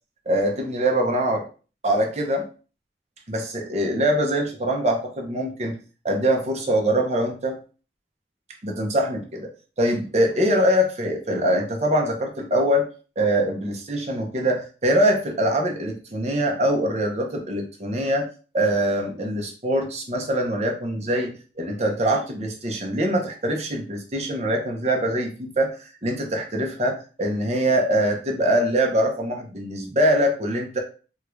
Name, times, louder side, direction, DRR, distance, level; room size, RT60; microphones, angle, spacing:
voice 1, 0.3-1.4 1.8-2.5 3.3-5.8 6.0-7.6 8.6-9.5 9.8-12.9 13.2-18.3 18.5-25.8 26.0-30.8, equal, 40° right, 2 dB, 0.7 m, -23 dB
3.6 x 2.3 x 3.1 m, 0.36 s
head